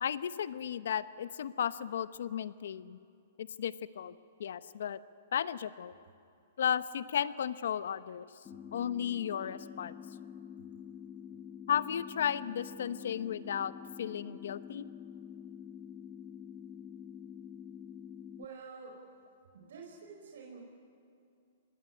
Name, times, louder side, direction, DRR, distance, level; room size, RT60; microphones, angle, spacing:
voice 1, 0.0-3.0 3.4-4.1 4.4-5.0 5.3-5.9 6.6-8.3 8.7-9.9 11.7-13.7 14.0-14.8, left 9 dB, 75° left, 15 dB, 0.9 m, -34 dB
sound 1, 8.5-18.5, left 8 dB, 20° left, 0.6 m, -47 dB
voice 2, 18.4-19.0 19.5-20.6, right 5 dB, 75° right, 0 dB, 4.8 m, -48 dB
24.5 x 19.0 x 9.6 m, 2.5 s
hypercardioid pair, 140°, 0 cm